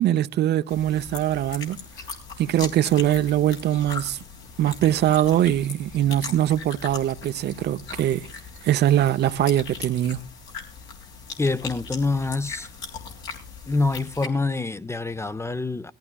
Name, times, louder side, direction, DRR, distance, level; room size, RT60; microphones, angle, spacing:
voice 1, 0.0-1.8 2.4-4.2 4.6-8.3 8.6-10.2, right 12 dB, 60° right, 0.7 m, -22 dB
sound 1, 0.7-14.3, left 5 dB, 80° left, 3.6 m, -39 dB
voice 2, 11.4-12.7 13.7-15.9, left 3 dB, 15° left, 0.5 m, -26 dB
19.5 x 14.5 x 2.3 m
supercardioid pair, 75°, 19 cm